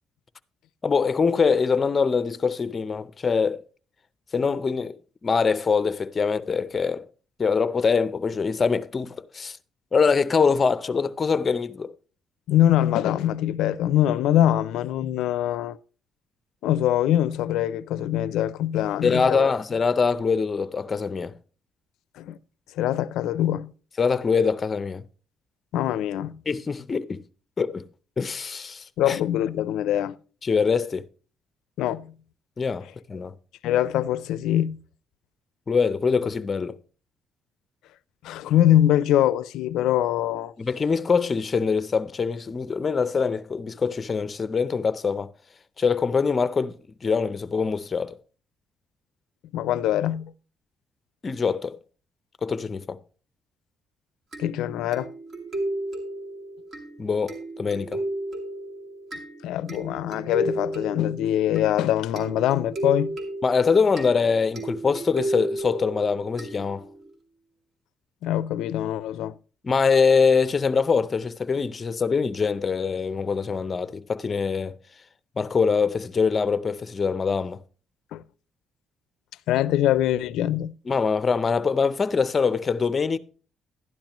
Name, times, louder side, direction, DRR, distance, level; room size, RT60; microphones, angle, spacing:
voice 1, 0.8-3.6 4.3-7.1 7.4-9.6 9.9-11.9 19.0-21.4 24.0-25.0 26.5-27.2 27.6-27.9 28.2-29.2 30.4-31.1 32.6-33.3 35.7-36.8 40.6-45.3 45.8-48.2 51.2-51.8 52.4-53.0 57.0-58.0 63.4-66.8 69.6-74.8 75.4-77.6 80.9-83.2, left 5 dB, 30° left, 0.6 m, -24 dB
voice 2, 12.5-15.8 16.6-19.5 22.2-22.4 22.8-23.7 25.7-26.4 29.0-30.2 31.8-32.1 33.6-34.8 38.2-40.5 49.5-50.3 54.4-55.1 59.4-63.2 68.2-69.3 78.1-78.2 79.5-80.7, left 12 dB, 85° left, 0.4 m, -23 dB
sound 1, 54.3-67.1, right 2 dB, 50° right, 2.4 m, -34 dB
12.0 x 10.5 x 3.0 m
cardioid pair, 115°, 0 cm